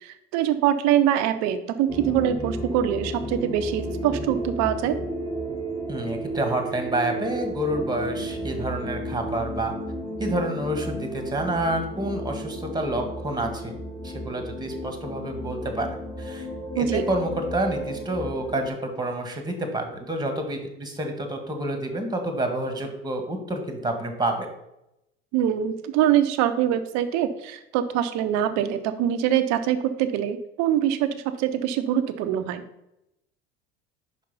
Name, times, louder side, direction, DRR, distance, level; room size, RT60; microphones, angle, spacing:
voice 1, 0.0-5.0 16.8-17.1 25.3-32.6, right 10 dB, 60° right, 10 dB, 0.8 m, -24 dB
sound 1, 1.9-18.7, equal, 10° left, 2.0 m, -33 dB
voice 2, 5.9-9.7 10.2-13.7 14.0-15.9 16.2-16.5 16.7-24.5, right 1 dB, 15° right, 5 dB, 1.7 m, -28 dB
5.4 x 5.0 x 5.5 m, 0.86 s
hypercardioid pair, 75°, 30 cm